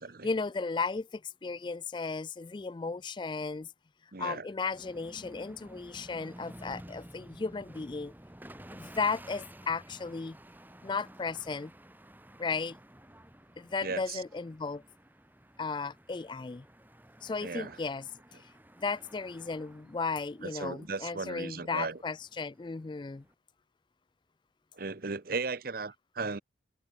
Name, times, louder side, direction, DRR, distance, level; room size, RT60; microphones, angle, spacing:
voice 1, 0.2-3.7 4.2-8.1 8.7-10.4 10.8-11.7 12.4-12.8 13.6-14.8 15.6-16.6 17.2-18.1 18.3-18.5 18.8-23.2, left 4 dB, 25° left, 0.3 m, -35 dB
voice 2, 4.1-4.5 13.8-14.2 17.4-17.8 20.4-22.0 24.7-26.4, right 4 dB, 50° right, 0.9 m, -36 dB
sound 1, 4.7-23.3, right 1 dB, 10° right, 2.9 m, -53 dB
head